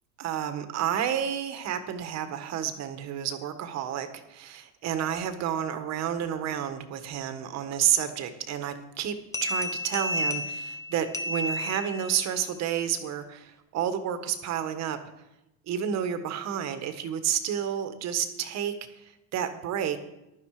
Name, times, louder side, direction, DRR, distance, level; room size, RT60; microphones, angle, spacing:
voice 1, 0.2-9.2 9.4-15.0 15.7-18.7 19.0-20.0, right 9 dB, 50° right, 10 dB, 1.6 m, -30 dB
sound 1, 9.3-12.3, left 1 dB, 10° left, 1.2 m, -32 dB
15.0 x 12.0 x 5.0 m, 0.91 s
cardioid pair, 150°, 34 cm